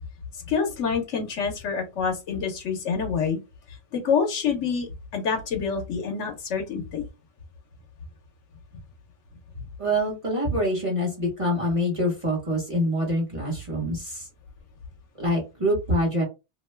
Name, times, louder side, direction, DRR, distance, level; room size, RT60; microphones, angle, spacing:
voice 1, 0.5-3.4 3.9-7.0, left 6 dB, 90° left, 3 dB, 1.2 m, -27 dB
voice 2, 9.8-14.3 15.2-16.2, equal, 30° right, -2 dB, 1.1 m, -25 dB
2.8 x 2.2 x 3.2 m, 0.26 s
omnidirectional pair, 1.2 m